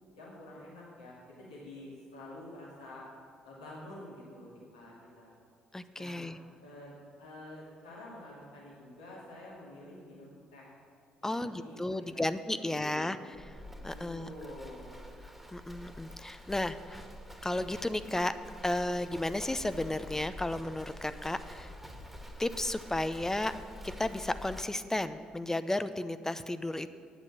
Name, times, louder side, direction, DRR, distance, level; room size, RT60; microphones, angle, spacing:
voice 1, 0.1-3.0 3.4-5.4 6.0-6.3 6.6-10.7 11.2-12.2 12.5-13.2 13.9-15.0, left 1 dB, 85° left, -6 dB, 2.4 m, -48 dB
voice 2, 5.7-6.4 11.2-13.2 13.8-14.3 15.5-17.0 17.4-18.3 18.6-21.7 22.4-23.5 24.0-26.9, left 1 dB, 15° left, 12 dB, 0.6 m, -33 dB
Livestock farm animals working animals, 13.3-24.6, equal, 5° right, 1.7 m, -47 dB
9.3 x 8.1 x 8.5 m, 2.2 s
figure-of-eight pair, 45°, 4 cm